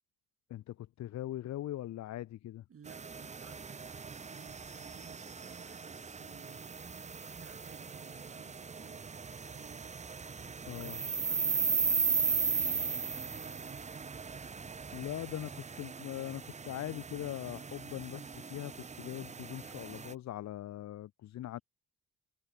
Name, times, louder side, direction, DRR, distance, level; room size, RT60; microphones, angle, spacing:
voice 1, 0.5-2.6 10.7-11.0 14.9-18.7 19.0-21.6, left 13 dB, 65° left, 0.8 m, -41 dB
voice 2, 2.7-6.7 7.3-10.3 10.6-14.3, right 7 dB, 50° right, 6.8 m, -58 dB
sound 1, 2.9-20.1, right 5 dB, 25° right, 0.8 m, -37 dB
cardioid pair, 90°, 30 cm